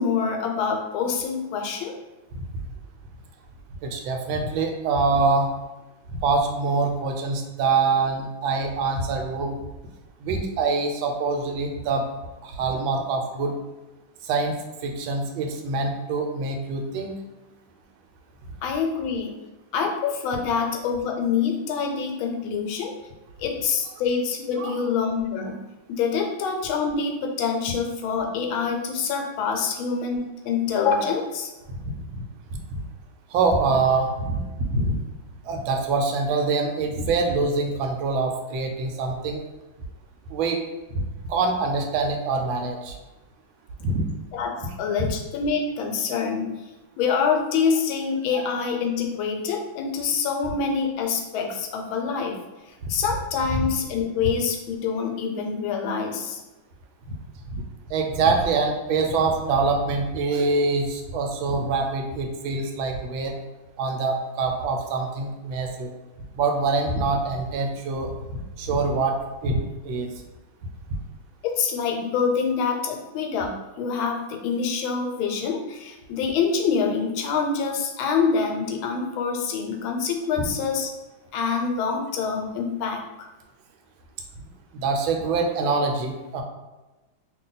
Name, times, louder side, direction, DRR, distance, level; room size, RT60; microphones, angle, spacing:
voice 1, 0.0-1.9 18.6-19.4 19.7-22.9 23.4-25.6 25.9-31.5 44.3-44.5 44.8-46.5 47.0-52.4 52.7-56.4 71.4-80.9 81.3-83.3, left 5 dB, 85° left, 2 dB, 1.4 m, -26 dB
voice 2, 3.8-5.5 6.1-9.6 10.2-12.0 12.4-13.5 14.2-17.2 24.6-24.8 31.7-32.2 33.3-34.4 34.7-35.0 35.4-39.4 40.3-40.6 41.0-43.0 43.8-44.0 45.0-45.1 48.3-48.5 52.8-52.9 53.5-53.7 57.1-57.2 57.5-57.6 57.9-63.4 63.8-65.9 66.3-69.2 69.4-70.1 80.4-80.5 84.7-86.4, right 3 dB, 80° right, 3 dB, 1.3 m, -25 dB
2.9 x 2.6 x 3.8 m, 1.1 s
omnidirectional pair, 2.2 m